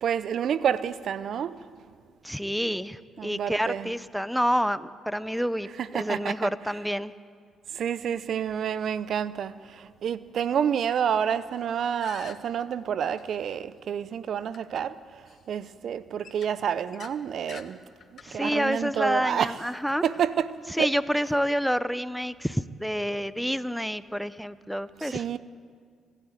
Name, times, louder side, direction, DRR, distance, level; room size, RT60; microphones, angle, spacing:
voice 1, 0.0-1.6 3.2-3.9 5.8-6.5 7.7-14.9 15.5-17.8 18.3-19.6 20.0-20.5 20.8-20.9 25.0-25.4, right 8 dB, 65° right, 0.6 m, -28 dB
voice 2, 2.2-7.1 18.2-20.0 20.8-25.2, equal, ahead, 0.8 m, -28 dB
sound 1, 12.0-12.3 13.2-13.3 14.5-14.8 15.3-15.4 16.2-17.2 17.5-17.7 18.0-18.3, left 7 dB, 55° left, 1.3 m, -45 dB
25.0 x 12.0 x 9.1 m
supercardioid pair, 55°, 0 cm